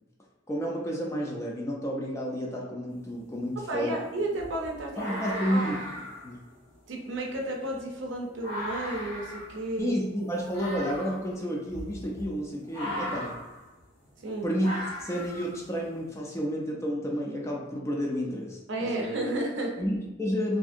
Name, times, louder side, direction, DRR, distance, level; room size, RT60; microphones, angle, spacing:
voice 1, 0.5-3.9 5.0-5.8 6.2-6.3 9.8-13.3 14.4-14.7 15.0-19.2 19.8-20.6, equal, 15° left, -2 dB, 0.4 m, -31 dB
sound 1, 2.9-3.0 3.4-16.0, equal, 90° left, 1.3 m, -39 dB
voice 2, 3.6-5.7 6.9-9.9 14.2-14.5 18.7-19.8, right 1 dB, 70° right, 0 dB, 0.5 m, -33 dB
2.6 x 2.5 x 2.5 m, 1.0 s
head